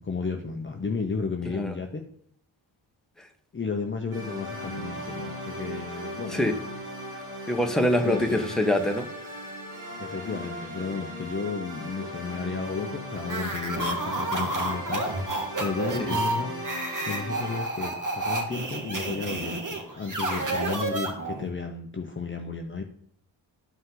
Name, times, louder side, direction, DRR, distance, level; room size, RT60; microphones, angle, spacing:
voice 1, 0.0-2.0 3.5-6.4 8.0-8.4 10.0-15.1 15.6-16.5 17.1-22.8, left 4 dB, 25° left, 3 dB, 0.9 m, -33 dB
sound 1, 4.1-17.6, equal, 80° right, 3.9 m, -37 dB
voice 2, 7.5-9.1 16.1-16.2, left 1 dB, ahead, 4 dB, 1.2 m, -24 dB
sound 2, 13.2-21.5, right 2 dB, 40° right, 2.1 m, -30 dB
12.0 x 5.3 x 3.9 m, 0.66 s
cardioid pair, 55°, 49 cm